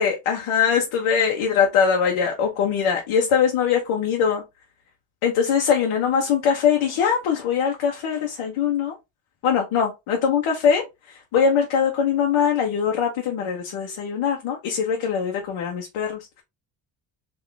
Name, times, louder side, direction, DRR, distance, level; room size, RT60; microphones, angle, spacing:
voice 1, 0.0-4.4 5.2-8.9 9.4-16.4, left 7 dB, 80° left, 1.1 m, -22 dB
3.8 x 2.9 x 3.4 m
cardioid pair, 75°, 49 cm